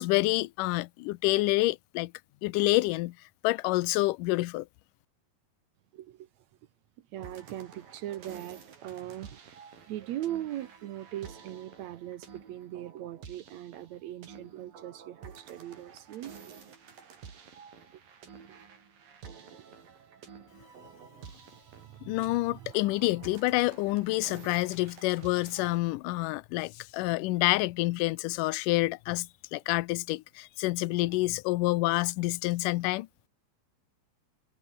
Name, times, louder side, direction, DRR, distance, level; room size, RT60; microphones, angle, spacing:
voice 1, 0.0-2.1 2.4-3.2 3.4-4.7 22.0-33.1, left 20 dB, 80° left, 2.2 m, -28 dB
voice 2, 5.9-6.3 7.0-9.6 9.9-16.3 21.1-21.3 21.8-22.7 31.0-31.1, right 13 dB, 70° right, 1.9 m, -40 dB
sound 1, 7.2-25.8, right 6 dB, 85° right, 5.8 m, -51 dB
omnidirectional pair, 3.9 m